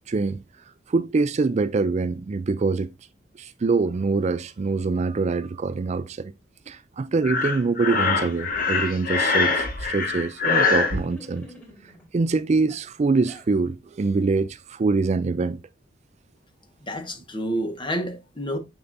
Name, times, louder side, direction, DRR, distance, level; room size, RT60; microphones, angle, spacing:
voice 1, 0.1-0.4 0.9-2.9 3.4-6.3 6.7-11.5 12.1-15.6, right 4 dB, 40° right, 0.4 m, -24 dB
Breathing, 7.2-11.0, left 4 dB, 50° left, 1.3 m, -23 dB
sound 1, 10.7-12.1 12.7-13.5, equal, 10° left, 3.5 m, -46 dB
voice 2, 16.8-18.6, equal, 30° left, 1.3 m, -29 dB
7.1 x 6.5 x 2.6 m
head